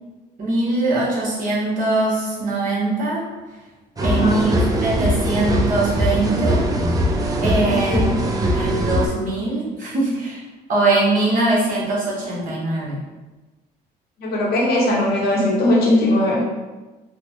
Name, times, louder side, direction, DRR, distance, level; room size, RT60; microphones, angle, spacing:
voice 1, 0.4-3.2 4.0-4.6 4.8-6.6 7.4-10.4 10.7-13.0, right 2 dB, 55° right, -5 dB, 1.1 m, -22 dB
voice 2, 4.0-4.4 7.7-8.0 14.2-16.4, left 1 dB, 70° left, -2 dB, 0.8 m, -19 dB
sound 1, 4.0-9.1, right 1 dB, 20° right, 0.4 m, -21 dB
3.3 x 2.1 x 2.8 m, 1.2 s
cardioid pair, 110°, 17 cm